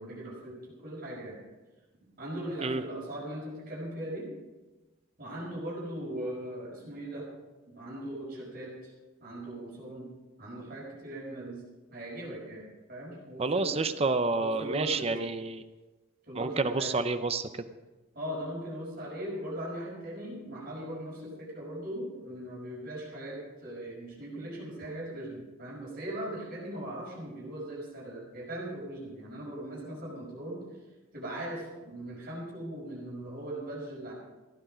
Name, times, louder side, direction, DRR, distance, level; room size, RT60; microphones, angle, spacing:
voice 1, 0.0-1.4 2.2-4.3 5.2-7.3 7.7-8.9 9.2-10.1 10.4-11.6 11.9-13.8 14.4-15.1 16.3-16.9 18.1-30.6 31.1-34.1, right 1 dB, 45° right, -3 dB, 5.6 m, -39 dB
voice 2, 13.4-15.6 16.4-17.5, right 3 dB, 30° right, 10 dB, 0.6 m, -29 dB
15.5 x 10.5 x 5.1 m, 1.2 s
head